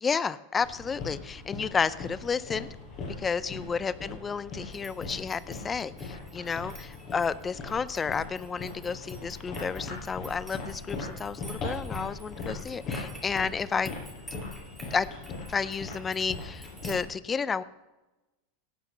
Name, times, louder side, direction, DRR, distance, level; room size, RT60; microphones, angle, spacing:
voice 1, 0.0-2.7 3.2-13.9 14.9-15.1 15.5-17.6, left 5 dB, 15° left, 17 dB, 0.4 m, -31 dB
sound 1, 0.6-17.0, left 3 dB, 30° left, 5.1 m, -40 dB
sound 2, 4.7-17.0, right 1 dB, ahead, 2.4 m, -51 dB
17.0 x 9.1 x 5.5 m, 1.1 s
supercardioid pair, 170°, 0 cm